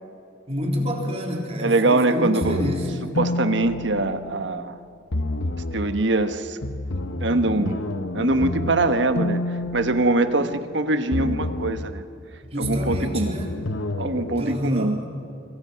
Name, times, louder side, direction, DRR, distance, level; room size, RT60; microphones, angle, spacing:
voice 1, 0.5-2.9 12.5-13.5 14.4-15.0, equal, 35° right, 0 dB, 3.7 m, -28 dB
voice 2, 1.6-2.6 3.2-4.7 5.7-6.6 7.2-7.8 8.1-12.0 12.6-13.4 14.0-15.0, right 2 dB, 70° right, 9 dB, 1.3 m, -23 dB
sound 1, 2.4-4.7 5.1-5.9 6.6-10.7 11.1-11.9 12.6-14.4, left 2 dB, 85° left, 1.1 m, -29 dB
26.0 x 24.5 x 5.8 m, 2.6 s
head